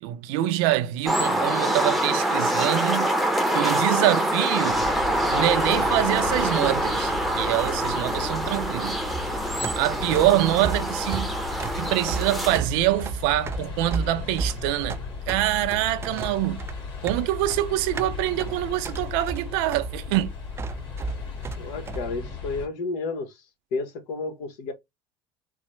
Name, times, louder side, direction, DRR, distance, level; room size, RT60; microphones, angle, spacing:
voice 1, 0.0-3.1 3.5-4.8 5.3-9.0 9.8-11.3 11.8-16.6 17.0-20.3, right 15 dB, 80° right, 0.5 m, -25 dB
sound 1, 1.1-12.6, right 1 dB, ahead, 0.7 m, -25 dB
sound 2, 4.7-22.7, left 5 dB, 40° left, 2.1 m, -36 dB
sound 3, 9.1-22.0, right 4 dB, 20° right, 0.3 m, -34 dB
voice 2, 21.6-23.4 23.7-24.7, left 3 dB, 75° left, 1.0 m, -31 dB
3.9 x 2.0 x 3.1 m
supercardioid pair, 100°, 12 cm